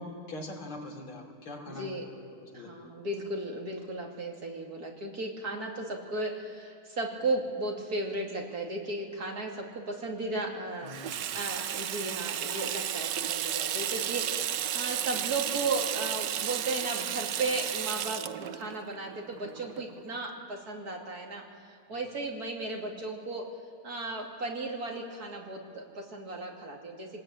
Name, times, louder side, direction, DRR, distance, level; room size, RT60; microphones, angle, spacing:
voice 1, 0.0-2.1 2.4-2.7 10.8-11.3 21.9-22.0, left 1 dB, 70° left, 0 dB, 4.1 m, -42 dB
voice 2, 1.7-2.1 2.5-21.4 21.9-23.5 23.8-27.1, right 2 dB, 45° right, 0 dB, 3.1 m, -35 dB
Water tap faucet / Sink (filling or washing), 10.9-20.2, right 10 dB, 65° right, 1.1 m, -33 dB
24.0 x 20.5 x 8.9 m, 2.5 s
omnidirectional pair, 2.4 m